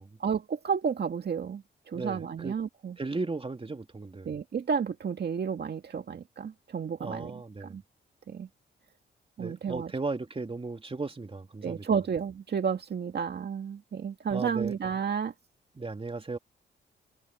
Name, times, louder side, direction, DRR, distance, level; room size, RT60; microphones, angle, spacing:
voice 1, 0.2-3.0 4.3-7.8 8.3-8.5 9.4-9.9 11.6-15.3, right 6 dB, 55° right, 2.0 m, -31 dB
voice 2, 1.9-2.5 3.0-4.3 7.0-7.8 9.4-11.9 14.3-14.7 15.8-16.4, right 3 dB, 30° right, 3.1 m, -36 dB
cardioid pair, 60°, 20 cm